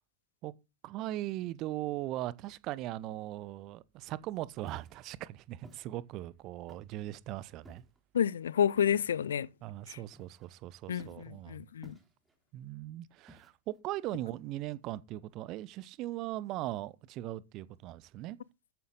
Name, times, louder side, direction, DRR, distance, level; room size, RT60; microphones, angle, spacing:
voice 1, 0.8-7.8 9.6-11.7 12.5-18.4, right 15 dB, 40° right, 0.9 m, -39 dB
Walk footsteps, 4.6-5.0 5.6-5.9 6.7-7.0 7.6-8.0 8.9-9.2 10.1-10.6 11.0-11.3 11.8-12.4 13.3-13.8, right 1 dB, 10° right, 3.4 m, -55 dB
voice 2, 8.1-9.5 9.9-10.0 10.9-11.9, left 9 dB, 65° left, 0.5 m, -30 dB
14.0 x 9.3 x 4.0 m
figure-of-eight pair, 90°, 0 cm